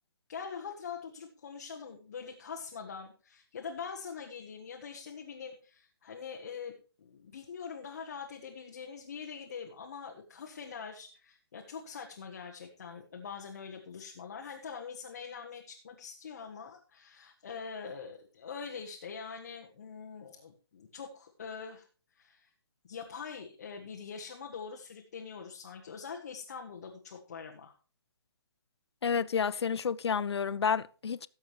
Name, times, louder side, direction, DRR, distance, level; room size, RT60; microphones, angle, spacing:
voice 1, 0.3-21.8 22.1-22.5 22.8-27.7, left 6 dB, 40° left, 1.2 m, -44 dB
voice 2, 29.0-31.3, left 6 dB, 90° left, 0.6 m, -30 dB
18.0 x 7.3 x 3.1 m
hypercardioid pair, 175°, 13 cm